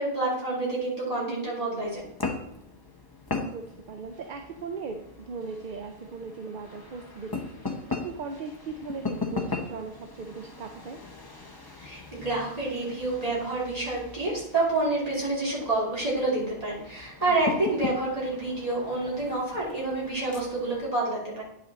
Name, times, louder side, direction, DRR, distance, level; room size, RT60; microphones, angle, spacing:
voice 1, 0.0-2.0 11.8-21.4, right 2 dB, 35° right, -5 dB, 3.1 m, -28 dB
sound 1, 1.8-20.9, left 3 dB, 20° left, 1.0 m, -39 dB
voice 2, 3.4-11.0 17.3-17.7, right 4 dB, 55° right, 5 dB, 0.7 m, -39 dB
9.5 x 5.8 x 4.1 m, 0.80 s
omnidirectional pair, 1.1 m